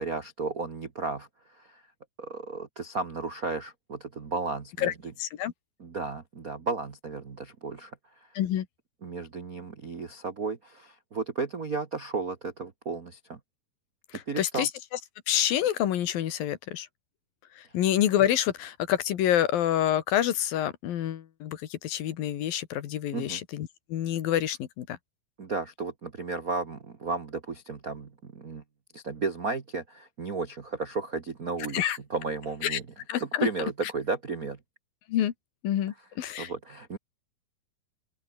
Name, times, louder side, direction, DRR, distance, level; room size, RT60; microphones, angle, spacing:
voice 1, 0.0-1.8 2.2-5.1 5.8-7.9 9.0-13.4 14.1-14.7 23.1-23.4 25.4-28.6 28.9-31.8 32.1-32.8 33.2-34.6 36.4-37.0, right 4 dB, 55° right, 1.0 m, -34 dB
voice 2, 4.8-5.5 8.3-8.7 14.1-14.7 15.3-16.9 17.6-25.0 31.7-32.0 32.6-32.8 33.1-33.5 35.1-35.3 35.6-36.5, left 11 dB, 80° left, 3.4 m, -27 dB
open air
omnidirectional pair, 4.1 m